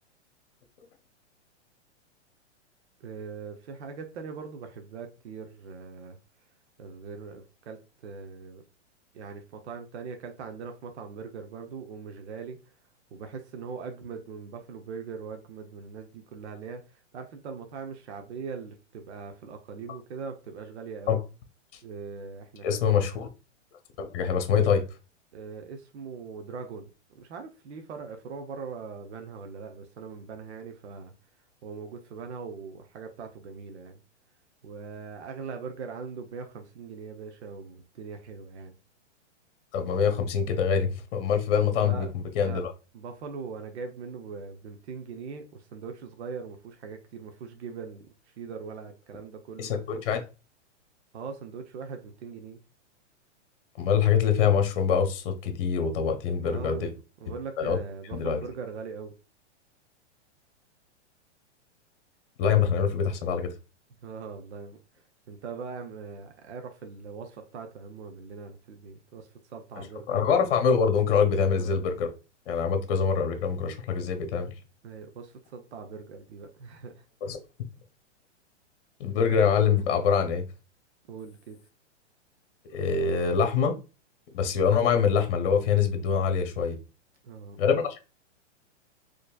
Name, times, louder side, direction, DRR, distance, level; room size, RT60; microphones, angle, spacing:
voice 1, 3.0-6.2 6.8-8.6 9.1-12.6 13.1-21.2 21.8-22.9 25.3-31.1 31.6-34.0 34.6-38.7 41.7-42.1 42.4-42.6 42.9-49.7 51.1-52.6 56.4-59.1 64.0-64.8 65.3-70.1 71.5-71.7 74.8-77.0 81.1-81.6 87.2-87.6, right 5 dB, 65° right, 0.9 m, -41 dB
voice 2, 22.6-23.3 24.0-24.8 39.7-42.7 49.6-50.2 53.8-56.9 57.6-57.8 58.1-58.4 62.4-63.5 70.1-72.1 72.5-74.5 77.2-77.4 79.0-80.4 82.7-83.7 84.3-86.8 87.6-88.0, left 6 dB, 50° left, 1.1 m, -24 dB
4.4 x 3.1 x 2.4 m
hypercardioid pair, 135°, 36 cm